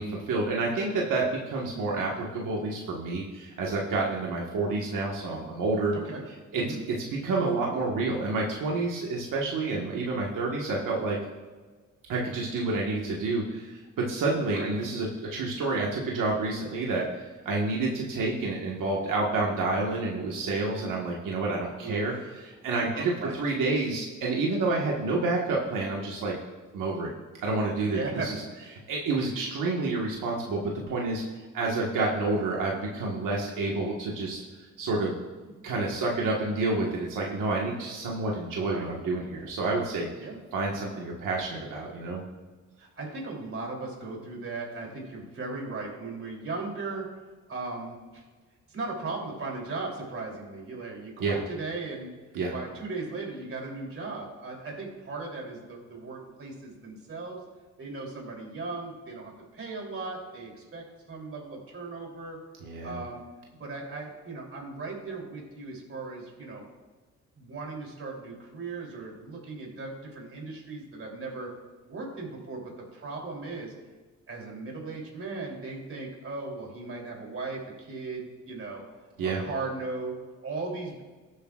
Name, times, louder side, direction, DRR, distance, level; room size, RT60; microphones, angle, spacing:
voice 1, 0.0-5.9 6.5-11.2 12.1-17.0 17.4-26.3 26.7-27.1 27.4-28.4 28.9-31.2 31.5-34.4 34.8-35.2 35.6-40.1 40.5-42.2 51.2-51.4 52.3-52.5 62.6-63.0 79.2-79.4, right 3 dB, 90° right, -3 dB, 1.6 m, -29 dB
voice 2, 21.8-22.2 22.8-23.4 27.9-28.3 38.6-38.9 40.2-40.4 42.8-47.1 47.5-48.2 48.7-52.1 52.5-57.4 57.8-62.4 62.8-63.2 63.6-66.6 67.4-71.5 71.9-72.6 72.9-73.7 74.3-78.8 79.2-81.0, right 3 dB, 45° right, -1 dB, 3.3 m, -37 dB
20.0 x 8.3 x 2.5 m, 1.4 s
cardioid pair, 130°, 31 cm